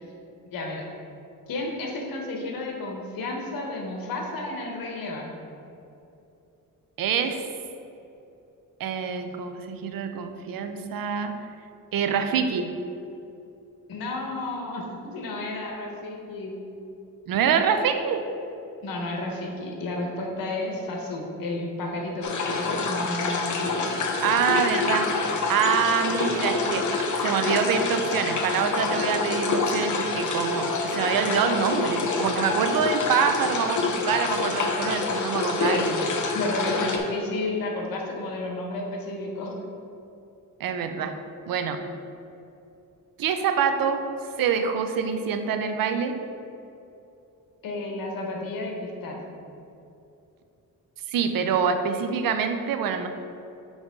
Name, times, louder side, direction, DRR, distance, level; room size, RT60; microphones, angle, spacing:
voice 1, 0.5-0.9 1.5-5.4 13.9-16.5 18.8-23.8 35.6-35.8 36.3-39.5 47.6-49.2, left 2 dB, 85° left, 0 dB, 1.2 m, -32 dB
voice 2, 7.0-7.4 8.8-11.3 11.9-12.7 17.3-18.2 24.2-25.1 25.5-36.0 40.6-41.1 41.5-41.8 43.2-44.0 44.4-46.1 51.1-53.1, right 6 dB, 80° right, 7 dB, 0.6 m, -25 dB
sound 1, 22.2-37.0, left 3 dB, 60° left, 0.9 m, -27 dB
6.3 x 5.3 x 3.7 m, 2.8 s
cardioid pair, 95°, 34 cm